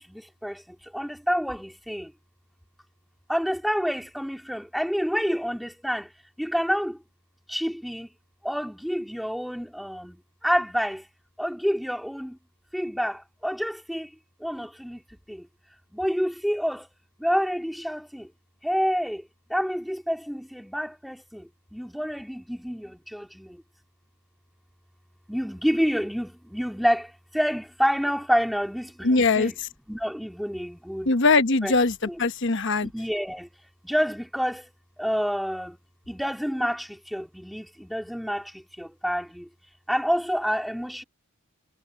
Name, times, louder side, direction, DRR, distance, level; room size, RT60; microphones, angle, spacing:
voice 1, 0.0-2.1 3.3-6.1 6.4-7.0 7.5-8.1 8.4-11.1 11.4-12.4 12.7-14.1 14.4-15.5 15.9-16.9 17.2-18.3 18.6-23.6 25.3-29.6 29.9-31.1 31.6-31.7 32.1-32.2 32.8-33.5 33.8-34.7 35.0-35.8 36.1-39.5 39.9-41.0, equal, ahead, 3.6 m, -28 dB
voice 2, 29.0-29.5 31.1-32.9, left 3 dB, 55° left, 1.2 m, -21 dB
head